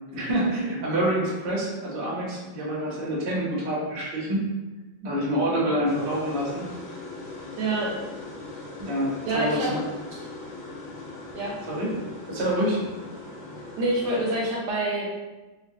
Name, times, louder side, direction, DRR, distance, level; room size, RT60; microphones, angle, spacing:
voice 1, 0.1-4.4 5.0-6.7 8.8-9.8 11.7-11.9 12.3-12.8, right 1 dB, 55° right, -5 dB, 0.6 m, -27 dB
sound 1, 5.8-14.5, left 2 dB, 65° left, 0.7 m, -40 dB
voice 2, 7.6-8.0 9.3-9.7 10.1-10.2 11.3-11.5 13.8-15.1, right 2 dB, 75° right, -3 dB, 1.1 m, -26 dB
3.1 x 2.4 x 2.6 m, 1.2 s
omnidirectional pair, 2.1 m